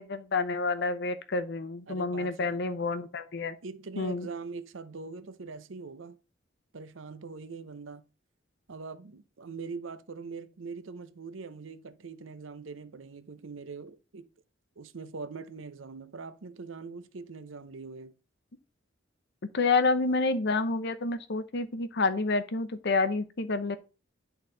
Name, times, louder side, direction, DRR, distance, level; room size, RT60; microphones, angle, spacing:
voice 1, 0.0-3.6 4.0-4.3 19.5-23.8, left 3 dB, 60° left, 0.7 m, -28 dB
voice 2, 1.9-2.6 3.6-6.2 6.7-8.1 8.7-14.3 14.8-18.1, right 4 dB, 85° right, 0.7 m, -42 dB
10.5 x 4.0 x 3.9 m
head